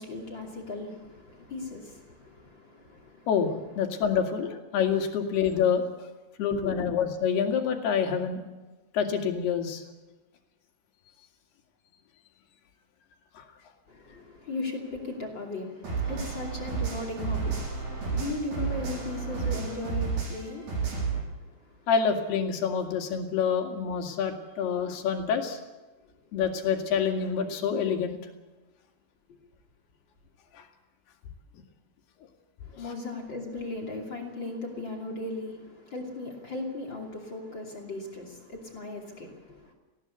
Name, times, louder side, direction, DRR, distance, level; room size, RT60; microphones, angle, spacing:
voice 1, 0.0-3.3 6.5-6.8 13.9-21.9 32.6-39.7, left 2 dB, 30° left, 4 dB, 2.8 m, -38 dB
voice 2, 3.3-5.8 6.4-8.4 8.9-9.8 13.4-13.5 21.9-25.6 26.3-28.2 30.5-30.7, left 7 dB, 70° left, 4 dB, 4.1 m, -27 dB
sound 1, 15.8-21.2, right 5 dB, 60° right, 9.1 m, -31 dB
19.5 x 17.0 x 8.3 m, 1.2 s
omnidirectional pair, 5.0 m